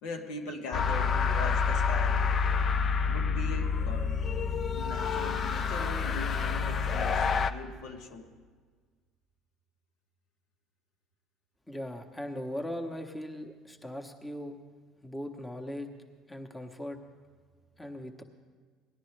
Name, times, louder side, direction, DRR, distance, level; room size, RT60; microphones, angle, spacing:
voice 1, 0.0-2.2 3.1-4.1 4.6-8.3, left 3 dB, 75° left, 3 dB, 1.1 m, -41 dB
sound 1, 0.7-7.5, left 5 dB, 45° left, 0.5 m, -28 dB
voice 2, 11.7-14.6 15.0-15.9 16.3-17.0 17.8-18.2, left 1 dB, 10° left, 4 dB, 1.0 m, -39 dB
18.0 x 10.5 x 3.3 m, 1.5 s
supercardioid pair, 85°, 0 cm